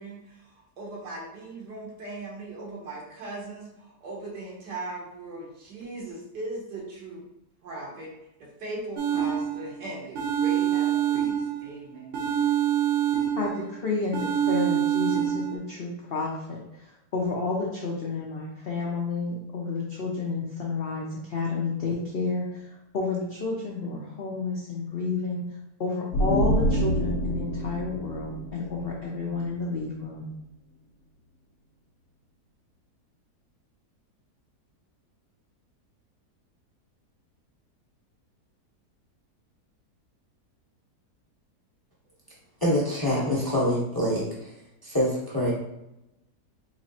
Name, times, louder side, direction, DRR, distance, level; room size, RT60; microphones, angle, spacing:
voice 1, 0.0-7.2 7.6-8.1 8.4-12.4, right 2 dB, 85° right, -4 dB, 1.8 m, -39 dB
sound 1, 9.0-9.7 10.2-11.7 12.1-13.7 14.1-15.6, right 10 dB, 60° right, 0.9 m, -25 dB
voice 2, 13.4-22.7 22.9-25.5 25.8-30.3, left 4 dB, 70° left, -3 dB, 0.5 m, -31 dB
sound 2, 26.1-29.7, equal, 55° left, 1.1 m, -27 dB
voice 3, 42.6-44.5 44.8-45.5, equal, 20° left, -5 dB, 0.7 m, -25 dB
4.1 x 3.0 x 2.7 m, 0.88 s
omnidirectional pair, 1.8 m